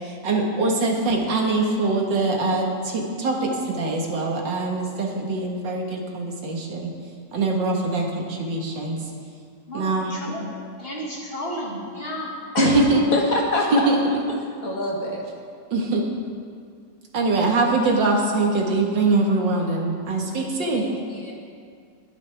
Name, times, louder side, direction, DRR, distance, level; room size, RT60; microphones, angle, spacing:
voice 1, 0.0-6.9 7.3-9.0 9.7-10.2 12.6-13.1 13.7-14.2 15.7-16.0 17.1-20.8, right 2 dB, 85° right, 0 dB, 2.3 m, -23 dB
voice 2, 9.7-12.3 12.6-12.9, equal, 30° left, -4 dB, 2.2 m, -33 dB
voice 3, 13.1-13.9 14.6-15.2 20.7-21.4, left 2 dB, 50° left, -1 dB, 1.9 m, -25 dB
21.0 x 9.6 x 3.5 m, 2.2 s
omnidirectional pair, 1.9 m